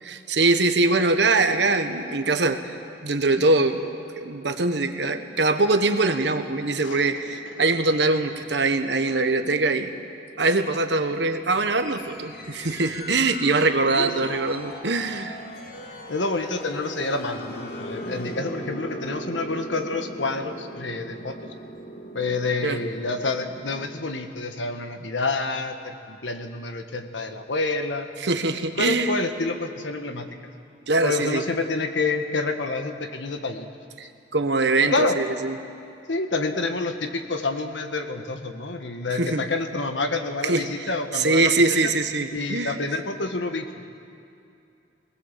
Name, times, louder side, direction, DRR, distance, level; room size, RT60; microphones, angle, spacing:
voice 1, 0.0-3.8 4.2-9.9 10.4-15.4 22.6-22.8 28.2-29.1 30.9-31.4 34.0-35.6 39.2-39.4 40.4-42.8, right 3 dB, 65° right, 7 dB, 1.3 m, -23 dB
sound 1, 11.7-24.0, equal, 55° left, 2.0 m, -39 dB
voice 2, 13.9-14.4 16.1-21.4 22.1-28.1 28.8-30.3 31.0-33.7 34.9-35.2 36.1-41.6 41.8-41.9 42.3-43.7, left 3 dB, 90° left, 6 dB, 1.5 m, -28 dB
22.0 x 19.0 x 7.5 m, 2.6 s
head